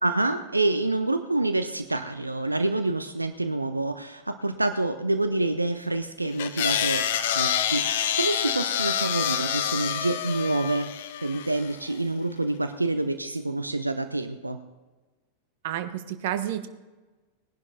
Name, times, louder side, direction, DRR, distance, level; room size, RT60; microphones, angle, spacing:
voice 1, 0.0-7.1 7.3-10.9 11.2-14.6, right 2 dB, 85° right, 9 dB, 0.7 m, -27 dB
sound 1, 6.4-11.7, left 9 dB, 55° left, 0.9 m, -27 dB
voice 2, 15.6-16.7, right 11 dB, 50° right, 11 dB, 1.0 m, -30 dB
19.5 x 11.0 x 4.0 m, 1.2 s
figure-of-eight pair, 90°, 0 cm